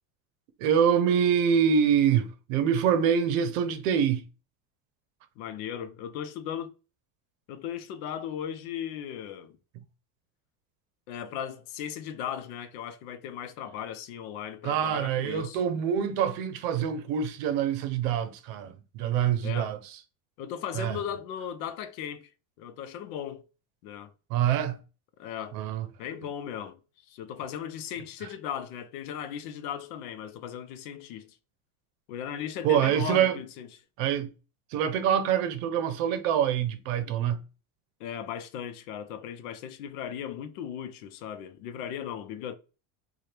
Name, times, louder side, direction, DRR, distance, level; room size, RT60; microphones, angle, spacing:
voice 1, 0.6-4.2 14.6-19.8 20.7-21.0 24.3-24.8 25.5-25.9 32.6-33.4 34.0-34.3 34.7-37.4, right 8 dB, 65° right, 0.7 m, -25 dB
voice 2, 5.4-6.7 7.5-9.6 11.1-15.6 19.4-19.7 20.4-22.3 22.6-23.4 23.8-24.1 25.2-25.6 26.0-26.8 27.1-31.3 32.1-33.7 38.0-42.5, left 9 dB, 80° left, 0.7 m, -37 dB
4.3 x 2.3 x 3.2 m
cardioid pair, 170°, 43 cm